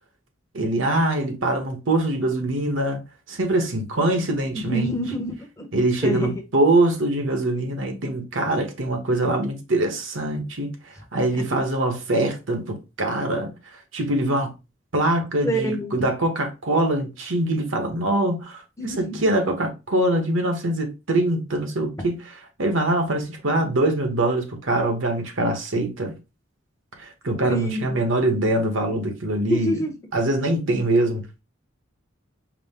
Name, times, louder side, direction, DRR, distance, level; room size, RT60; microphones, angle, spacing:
voice 1, 0.5-3.0 3.3-5.0 5.7-10.7 11.1-13.5 13.9-14.5 14.9-22.3 22.6-26.1 27.0-29.7 30.1-31.3, right 1 dB, 65° right, 1.1 m, -23 dB
voice 2, 4.5-5.7 6.0-6.3 11.1-11.2 15.4-16.1 18.8-19.2 27.5-27.8 28.9-29.0 29.5-29.9, right 1 dB, 15° left, 0.9 m, -27 dB
4.8 x 2.1 x 3.6 m
head